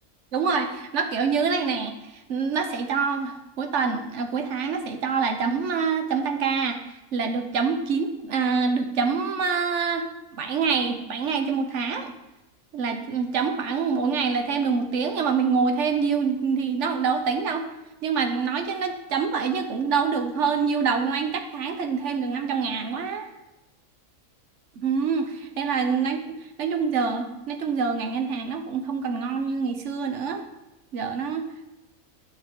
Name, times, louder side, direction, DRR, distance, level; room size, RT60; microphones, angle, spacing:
voice 1, 0.3-1.9 2.3-6.8 7.1-10.1 10.3-12.1 12.7-17.6 18.0-23.3 24.8-30.4 30.9-31.5, right 5 dB, 60° right, 6 dB, 1.2 m, -26 dB
12.0 x 6.4 x 3.6 m, 0.96 s
omnidirectional pair, 1.4 m